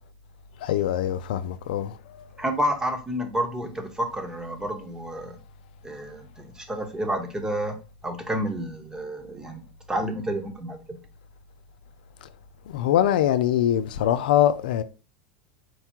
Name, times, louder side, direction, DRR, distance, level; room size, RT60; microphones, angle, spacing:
voice 1, 0.6-2.0 12.7-14.8, left 11 dB, 80° left, 0.4 m, -23 dB
voice 2, 2.4-5.4 5.8-7.8 8.0-9.6 9.9-11.0, right 1 dB, 15° right, 1.0 m, -30 dB
4.6 x 2.3 x 4.3 m
hypercardioid pair, 105°, 5 cm